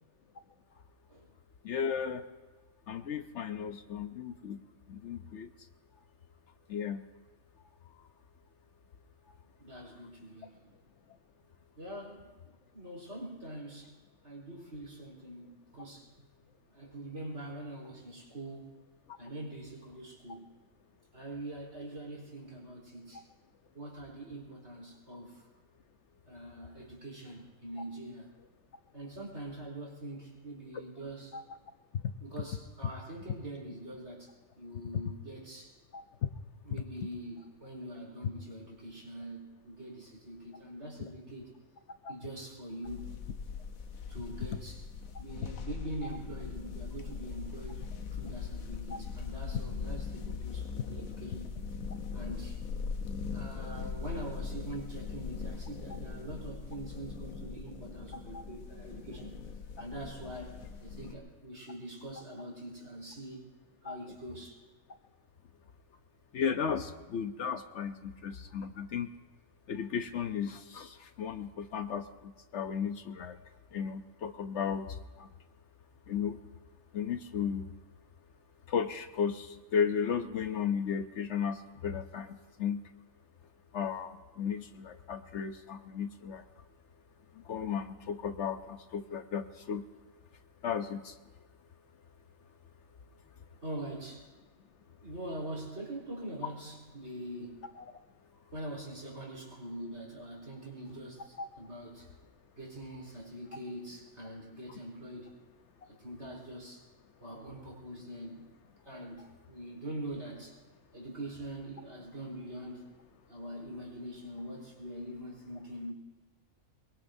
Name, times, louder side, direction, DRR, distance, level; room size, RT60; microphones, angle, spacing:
voice 1, 1.6-2.2 2.9-4.6 4.9-5.5 6.7-7.0 31.3-31.4 35.9-36.3 42.0-42.1 58.3-58.4 63.8-64.0 66.3-69.1 69.7-73.4 73.7-74.9 75.2-75.3 76.1-76.4 76.9-77.7 78.7-82.8 83.7-86.4 87.5-89.8 90.6-91.2 97.8-97.9, left 7 dB, 65° left, 8 dB, 1.0 m, -35 dB
voice 2, 9.6-10.7 11.8-13.9 14.2-16.1 16.7-18.8 19.2-20.5 21.1-23.3 23.7-25.5 26.3-28.3 28.9-31.4 32.2-35.8 36.6-41.5 42.1-43.1 44.1-44.8 45.2-51.5 52.1-52.6 53.3-59.4 59.8-63.4 63.8-64.6 93.6-94.3 95.0-97.6 98.3-102.1 102.6-105.4 105.9-106.8 107.2-108.5 108.9-110.6 110.9-112.9 113.3-115.9, right 1 dB, 55° right, -3 dB, 4.5 m, -44 dB
sound 1, 42.8-61.1, left 5 dB, 90° left, 1.4 m, -40 dB
23.5 x 22.5 x 2.7 m, 1.3 s
omnidirectional pair, 1.4 m